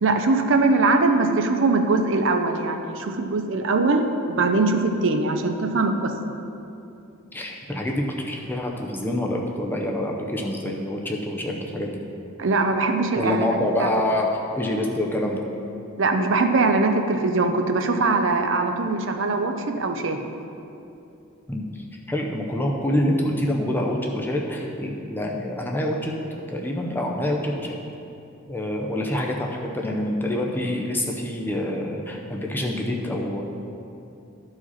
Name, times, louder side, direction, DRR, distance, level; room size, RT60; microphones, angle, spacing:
voice 1, 0.0-6.1 12.4-13.5 13.8-13.9 16.0-20.3, right 3 dB, 55° right, 5 dB, 0.5 m, -21 dB
voice 2, 7.3-12.0 13.2-15.5 21.5-27.8 28.5-33.4, left 1 dB, 10° left, 0 dB, 0.6 m, -26 dB
13.0 x 4.9 x 4.1 m, 2.8 s
head